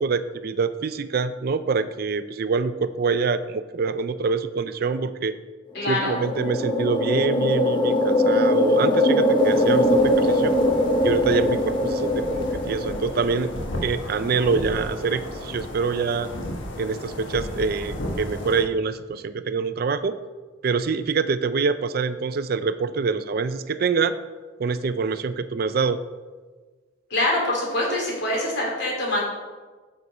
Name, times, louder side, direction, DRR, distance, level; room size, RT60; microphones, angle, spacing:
voice 1, 0.0-5.3 5.9-10.5 11.0-13.5 13.8-16.3 16.8-20.1 20.6-24.1 24.6-26.0, right 5 dB, 50° right, 13 dB, 0.4 m, -25 dB
voice 2, 5.7-6.1 27.1-29.2, left 1 dB, 60° left, -3 dB, 3.0 m, -24 dB
sound 1, 5.8-13.5, left 1 dB, 25° left, 0.7 m, -21 dB
sound 2, 9.4-18.6, left 1 dB, 75° left, 1.3 m, -34 dB
9.2 x 6.7 x 4.2 m, 1.4 s
head